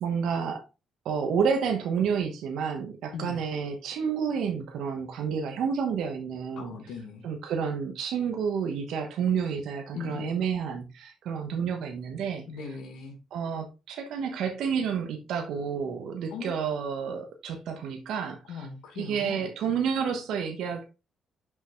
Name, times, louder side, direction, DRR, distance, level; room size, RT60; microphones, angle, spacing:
voice 1, 0.0-0.6 1.0-6.7 7.2-12.5 13.3-18.7 19.0-20.9, right 6 dB, 80° right, 1.2 m, -30 dB
voice 2, 6.6-7.3 9.9-10.4 12.5-13.2 16.3-16.5 18.5-19.5, left 5 dB, 90° left, 1.6 m, -39 dB
5.9 x 5.6 x 3.1 m
cardioid pair, 90°, 0 cm